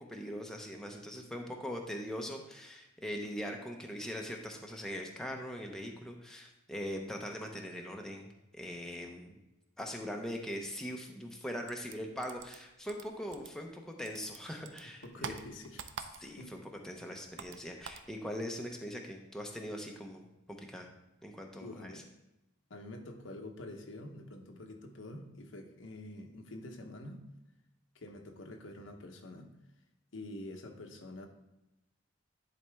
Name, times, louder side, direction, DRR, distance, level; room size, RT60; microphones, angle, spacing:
voice 1, 0.0-9.4 9.8-15.4 16.2-16.6 16.8-20.9 21.2-21.9, equal, 5° left, 1 dB, 0.7 m, -41 dB
sound 1, 11.7-13.8 14.1-16.5 16.8-18.1, right 6 dB, 70° right, 0.5 m, -46 dB
voice 2, 15.0-15.9 16.2-16.5 21.6-22.0 22.7-27.2 27.9-29.5 30.1-31.3, left 1 dB, 75° left, 4 dB, 0.9 m, -46 dB
10.5 x 4.2 x 3.4 m, 0.93 s
head